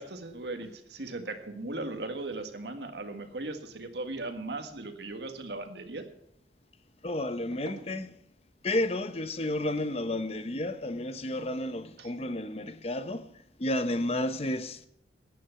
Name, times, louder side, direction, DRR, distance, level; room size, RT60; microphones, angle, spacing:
voice 1, 0.0-6.1 7.5-7.8 12.0-12.1, right 2 dB, 75° right, 1.7 m, -38 dB
voice 2, 7.0-8.1 8.6-13.3 13.6-14.9, left 1 dB, 35° left, 0.8 m, -31 dB
14.0 x 9.6 x 5.8 m
head